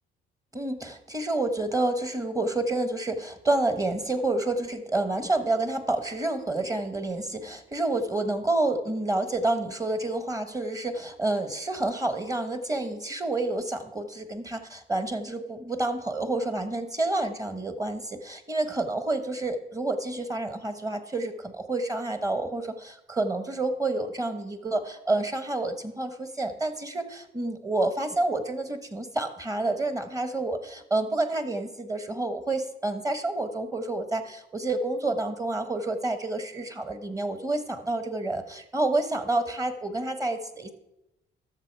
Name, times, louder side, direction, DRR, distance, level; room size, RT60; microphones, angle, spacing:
voice 1, 0.5-40.7, right 2 dB, 15° right, 9 dB, 1.2 m, -29 dB
12.5 x 6.7 x 4.7 m, 0.88 s
cardioid pair, 90°, 20 cm